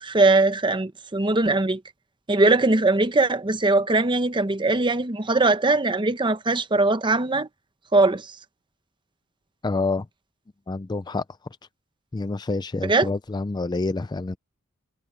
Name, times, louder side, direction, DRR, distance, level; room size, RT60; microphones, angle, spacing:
voice 1, 0.0-1.8 2.3-7.5 7.9-8.3 12.8-13.1, right 2 dB, 20° right, 0.9 m, -21 dB
voice 2, 9.6-10.1 10.7-11.2 12.1-14.4, left 3 dB, 20° left, 0.4 m, -27 dB
head